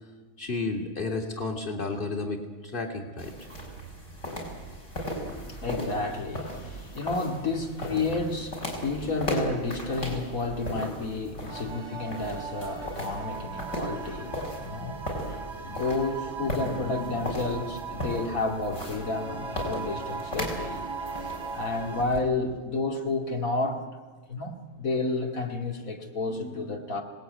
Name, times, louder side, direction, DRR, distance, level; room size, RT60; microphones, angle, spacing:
voice 1, 0.4-3.3, left 3 dB, 40° left, 3.0 m, -32 dB
sound 1, 3.2-22.2, equal, 60° left, 6.1 m, -37 dB
voice 2, 5.2-20.9 21.5-23.8 24.3-27.0, left 3 dB, 85° left, 2.8 m, -31 dB
sound 2, 11.5-22.0, right 4 dB, 20° right, 1.0 m, -38 dB
26.5 x 19.5 x 9.2 m
omnidirectional pair, 1.4 m